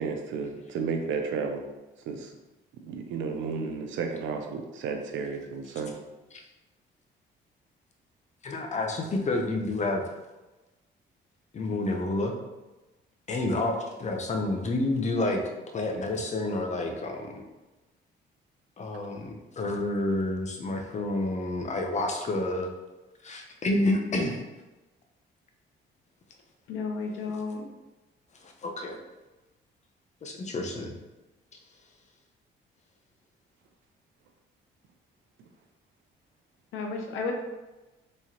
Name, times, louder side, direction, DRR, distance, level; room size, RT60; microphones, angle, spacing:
voice 1, 0.0-1.7 2.1-2.3 2.8-5.9, right 5 dB, 70° right, 4 dB, 0.5 m, -32 dB
voice 2, 8.4-10.0 11.5-12.4 13.3-15.4 15.7-17.4 18.8-22.7 23.2-24.4 28.4-29.0 30.2-30.9, left 2 dB, 35° left, 3 dB, 0.6 m, -29 dB
voice 3, 26.7-27.7 36.7-37.3, left 4 dB, 85° left, 2 dB, 0.7 m, -32 dB
3.5 x 3.1 x 2.9 m, 1.1 s
cardioid pair, 90°, 20 cm